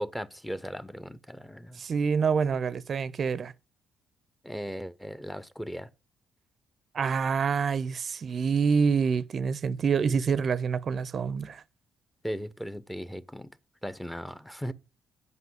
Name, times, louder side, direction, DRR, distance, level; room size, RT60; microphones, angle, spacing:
voice 1, 0.0-1.8 4.4-5.9 12.2-13.5 13.8-14.7, equal, 5° left, 0.6 m, -37 dB
voice 2, 1.8-3.5 6.9-11.6, right 6 dB, 50° right, 0.5 m, -27 dB
8.3 x 5.3 x 7.7 m
cardioid pair, 90°, 0 cm